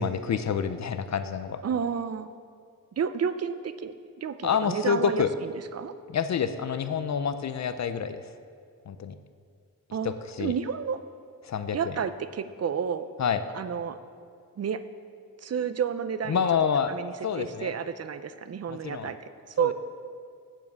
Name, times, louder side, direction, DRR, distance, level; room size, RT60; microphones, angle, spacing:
voice 1, 0.0-1.6 4.4-5.3 6.1-8.3 8.9-9.1 10.0-10.5 11.4-11.9 13.2-13.4 16.3-16.9 17.2-17.7 18.7-19.1 19.6-19.7, left 7 dB, 50° left, 11 dB, 0.5 m, -28 dB
voice 2, 1.6-2.3 3.0-3.9 4.2-5.2 5.7-5.9 9.9-10.1 10.4-11.0 11.7-13.1 13.5-14.0 14.6-14.8 15.4-16.4 16.9-19.2 19.5-19.7, right 7 dB, 45° right, 12 dB, 0.5 m, -30 dB
7.4 x 7.3 x 8.0 m, 2.2 s
wide cardioid pair, 100°, 34 cm